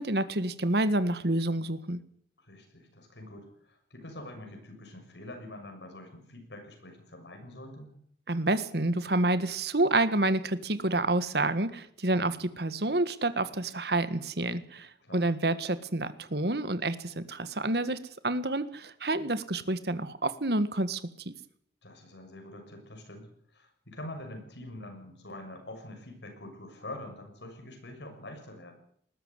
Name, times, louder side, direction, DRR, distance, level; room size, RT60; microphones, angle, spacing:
voice 1, 0.0-2.0 8.3-21.0 21.3-21.4, right 2 dB, 60° right, 13 dB, 1.7 m, -28 dB
voice 2, 2.4-7.9 15.0-15.3 21.8-23.3 23.5-28.7, left 1 dB, 75° left, 4 dB, 6.8 m, -45 dB
20.0 x 13.0 x 9.8 m, 0.64 s
head